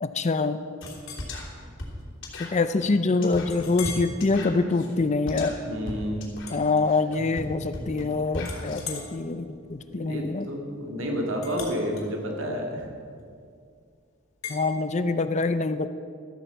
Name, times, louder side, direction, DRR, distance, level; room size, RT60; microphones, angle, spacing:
voice 1, 0.0-0.6 2.5-5.5 6.5-10.5 14.5-15.9, left 3 dB, 35° left, 11 dB, 0.5 m, -25 dB
Chink clink, 0.8-1.3 1.8-2.0 2.5-2.6 3.5-4.1 4.7-4.9 6.4-7.4 7.7-8.1 8.4-13.5 14.4-14.6, left 5 dB, 75° left, 2.8 m, -41 dB
sound 1, 0.8-8.8, left 1 dB, 60° left, 3.2 m, -37 dB
voice 2, 5.6-6.4 9.9-12.9, equal, 65° right, 1 dB, 2.3 m, -30 dB
13.5 x 8.8 x 7.0 m, 2.2 s
head